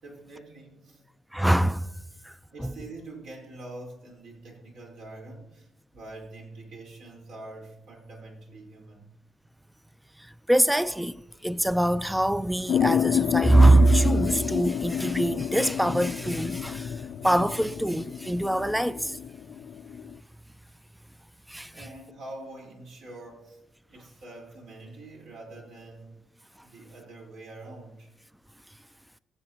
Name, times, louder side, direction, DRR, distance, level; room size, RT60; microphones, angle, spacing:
voice 1, 0.0-1.0 2.1-9.1 21.7-23.6 23.9-26.2 26.6-28.1, right 2 dB, 85° right, 4.3 m, -45 dB
voice 2, 1.3-1.9 2.2-2.7 10.2-11.2 11.4-19.2 21.5-21.8, right 1 dB, 5° right, 0.3 m, -23 dB
sound 1, 12.7-20.2, left 8 dB, 70° left, 0.4 m, -29 dB
21.5 x 7.7 x 3.0 m
cardioid pair, 90°, 0 cm